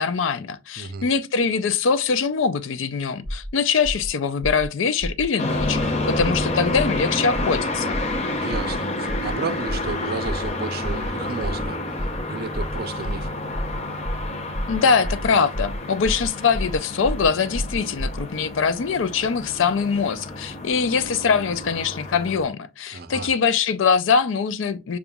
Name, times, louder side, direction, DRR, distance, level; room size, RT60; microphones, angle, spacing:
voice 1, 0.0-8.0 14.7-25.0, left 5 dB, 75° left, 0.4 m, -23 dB
sound 1, 3.2-3.5 3.8-4.1 4.4-4.7 5.0-5.3 5.6-5.8 6.2-6.4 6.7-7.0 7.3-7.6 7.9-8.2 8.5-8.8 9.1-9.3 9.7-9.9 10.2-10.5 10.8-11.1 11.4-11.7 12.0-12.2 12.5-12.8 13.0-13.3 13.5-13.8 14.0-14.3 14.5-14.8 15.0-15.3 15.5-15.8 16.0-16.3 16.5-16.8 17.0-17.3 17.5-18.2, equal, ahead, 1.2 m, -29 dB
sound 2, 5.4-22.5, left 2 dB, 35° left, 0.7 m, -29 dB
voice 2, 8.3-13.3 22.9-23.3, right 4 dB, 50° right, 0.5 m, -33 dB
6.8 x 2.4 x 2.3 m
head